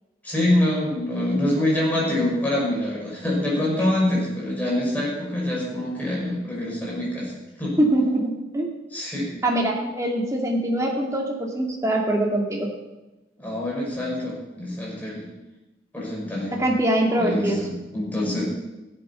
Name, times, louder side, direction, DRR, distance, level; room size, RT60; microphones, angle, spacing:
voice 1, 0.2-7.3 7.6-7.7 8.9-9.3 13.4-15.2 15.9-16.5 17.2-18.5, left 1 dB, 10° left, -5 dB, 5.5 m, -25 dB
voice 2, 7.8-8.7 9.4-12.7 16.5-17.6, right 1 dB, 15° right, -1 dB, 2.2 m, -23 dB
16.0 x 8.0 x 6.9 m, 1.0 s
head